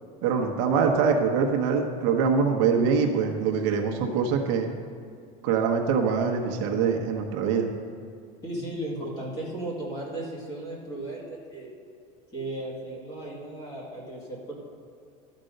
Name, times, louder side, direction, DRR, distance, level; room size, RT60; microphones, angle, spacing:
voice 1, 0.2-4.7 5.4-7.7, right 5 dB, 60° right, 3 dB, 1.0 m, -24 dB
voice 2, 8.4-11.7 12.3-14.5, right 1 dB, 20° left, -4 dB, 2.1 m, -35 dB
12.5 x 5.2 x 6.6 m, 2.4 s
cardioid pair, 180°, 19 cm